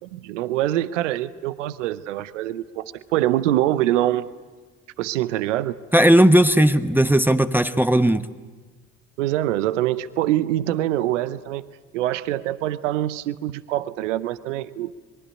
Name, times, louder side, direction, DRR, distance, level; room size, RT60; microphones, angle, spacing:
voice 1, 0.0-4.2 5.0-5.8 9.2-11.6 11.9-14.9, right 14 dB, 80° right, 15 dB, 0.8 m, -24 dB
voice 2, 5.9-8.3, right 1 dB, 5° right, 8 dB, 1.1 m, -16 dB
25.0 x 22.5 x 9.9 m, 1.3 s
hypercardioid pair, 50°, 36 cm